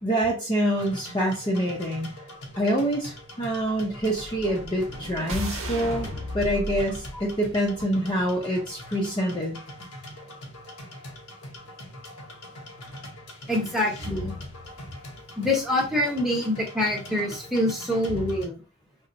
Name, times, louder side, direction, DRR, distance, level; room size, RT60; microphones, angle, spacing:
voice 1, 0.0-2.2 2.6-6.1 6.3-9.6, equal, 20° left, -2 dB, 0.5 m, -26 dB
sound 1, 0.7-18.5, left 1 dB, 85° left, 0.9 m, -42 dB
sound 2, 4.1-8.4, equal, 65° right, 0.8 m, -35 dB
voice 2, 13.5-14.3 15.4-18.5, left 1 dB, ahead, -2 dB, 0.9 m, -25 dB
3.9 x 2.1 x 2.5 m, 0.33 s
head